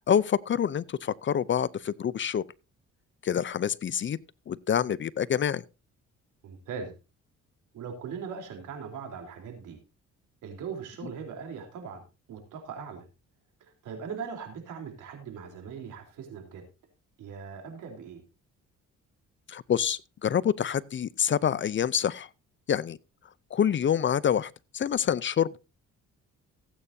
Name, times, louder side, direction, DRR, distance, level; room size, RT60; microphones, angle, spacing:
voice 1, 0.1-2.4 3.2-4.2 4.5-5.6 19.5-22.3 22.7-23.0 23.5-25.6, left 8 dB, 40° left, 0.5 m, -27 dB
voice 2, 6.4-7.0 7.7-9.8 10.4-12.0 12.3-13.1 13.6-16.7 17.2-18.2, right 6 dB, 85° right, 3.6 m, -40 dB
17.0 x 8.9 x 2.7 m
cardioid pair, 90°, 30 cm